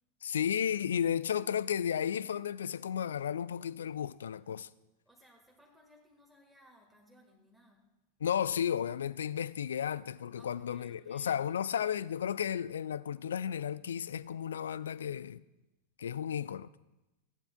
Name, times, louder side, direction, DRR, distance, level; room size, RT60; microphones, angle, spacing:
voice 1, 0.2-4.7 8.2-15.4 16.0-16.7, left 8 dB, 65° left, 0.3 m, -33 dB
voice 2, 5.0-7.9 10.3-11.7, equal, ahead, 1.5 m, -62 dB
16.0 x 11.5 x 2.2 m
figure-of-eight pair, 90°, 0 cm